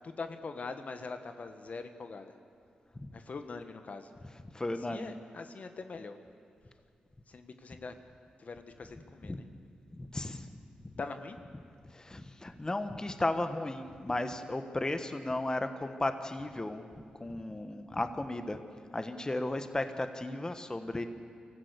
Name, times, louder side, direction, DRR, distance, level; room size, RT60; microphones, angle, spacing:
voice 1, 0.0-2.3 3.1-4.1 4.9-6.2 7.3-7.9 8.4-9.4 11.0-11.4, left 4 dB, 55° left, 8 dB, 1.4 m, -42 dB
voice 2, 4.5-5.2 9.2-9.4 10.0-10.5 10.8-10.9 11.8-16.8 17.2-18.6 18.9-21.0, left 2 dB, 25° left, 8 dB, 1.4 m, -35 dB
24.0 x 14.5 x 8.2 m, 2.2 s
cardioid pair, 55°, 3 cm